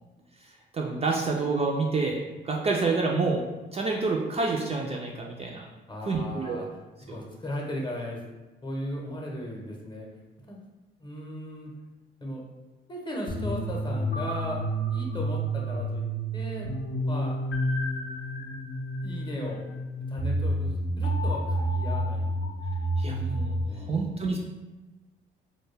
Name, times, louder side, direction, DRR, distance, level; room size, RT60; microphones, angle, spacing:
voice 1, 0.4-5.7 6.1-6.6 7.1-7.2 23.0-24.4, right 3 dB, 30° right, -1 dB, 0.3 m, -28 dB
voice 2, 5.9-6.7 7.0-8.2 8.6-10.1 10.5-10.6 11.0-11.7 12.2-12.4 12.9-14.6 14.9-16.0 16.3-16.7 17.0-17.4 19.0-19.6 20.1-23.0 23.5-24.0, left 1 dB, 20° left, -2 dB, 0.8 m, -37 dB
sound 1, 13.3-23.6, right 1 dB, 60° left, 0.5 m, -29 dB
2.2 x 2.2 x 3.2 m, 1.2 s
supercardioid pair, 70°, 20 cm